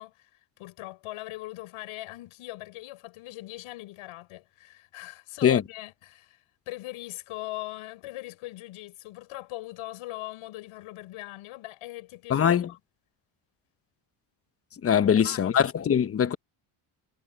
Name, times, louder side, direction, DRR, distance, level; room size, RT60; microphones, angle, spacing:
voice 1, 0.0-12.8 15.0-15.6, left 18 dB, 90° left, 5.3 m, -41 dB
voice 2, 12.3-12.7 14.8-16.4, left 8 dB, 30° left, 0.8 m, -22 dB
cardioid pair, 155°, 49 cm